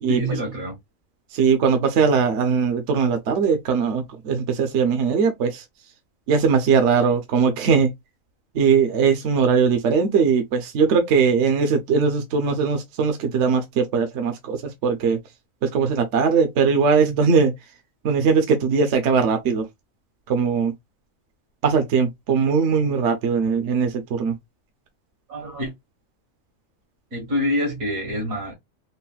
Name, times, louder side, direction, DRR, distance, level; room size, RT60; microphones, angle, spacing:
voice 1, 0.1-0.8 25.3-25.7 27.1-28.5, equal, 80° right, 1.8 m, -26 dB
voice 2, 1.3-5.6 6.3-7.9 8.5-15.2 15.6-17.5 18.0-19.6 20.3-20.7 21.6-24.3, right 5 dB, 65° right, 0.9 m, -20 dB
3.9 x 2.1 x 2.3 m
omnidirectional pair, 1.4 m